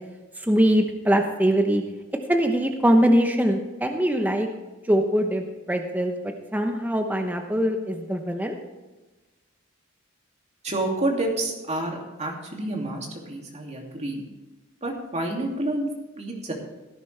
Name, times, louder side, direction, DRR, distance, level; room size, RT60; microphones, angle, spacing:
voice 1, 0.4-1.8 2.3-4.5 4.9-8.6, equal, 10° right, 4 dB, 0.9 m, -22 dB
voice 2, 10.6-14.2 14.8-15.9 16.2-16.5, right 2 dB, 35° right, 0 dB, 2.5 m, -29 dB
17.0 x 10.0 x 3.4 m, 1.2 s
head